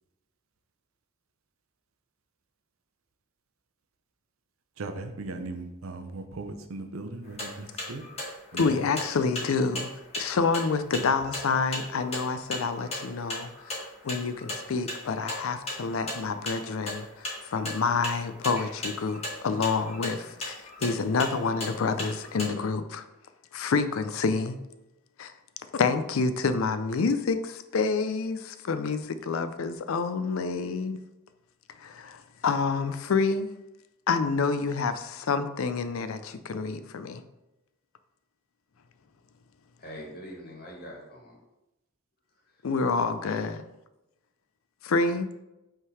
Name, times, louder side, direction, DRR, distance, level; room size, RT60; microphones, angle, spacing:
voice 1, 4.8-8.0 8.5-8.9, right 2 dB, 80° right, 0.7 m, -38 dB
sound 1, 7.3-22.5, left 1 dB, 30° left, 1.7 m, -36 dB
voice 2, 8.6-9.9 10.2-23.0 23.5-24.6 25.2-25.3 25.7-31.0 31.8-33.5 34.1-37.2 42.6-43.6 44.8-45.3, left 4 dB, 75° left, 0.5 m, -28 dB
voice 3, 39.8-41.4 42.5-42.6 43.2-43.6, equal, 50° left, 1.8 m, -44 dB
5.5 x 3.7 x 4.7 m
head